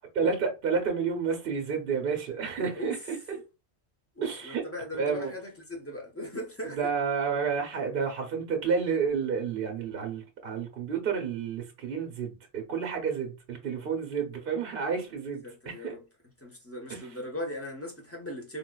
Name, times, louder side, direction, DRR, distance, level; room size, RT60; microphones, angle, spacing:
voice 1, 0.2-3.2 4.2-4.6 5.0-5.3 6.6-15.9 16.9-17.1, right 6 dB, 60° right, 1.0 m, -30 dB
voice 2, 4.1-6.9 15.4-16.0 16.4-18.6, left 1 dB, 15° left, 0.9 m, -38 dB
3.9 x 2.4 x 2.3 m
omnidirectional pair, 1.1 m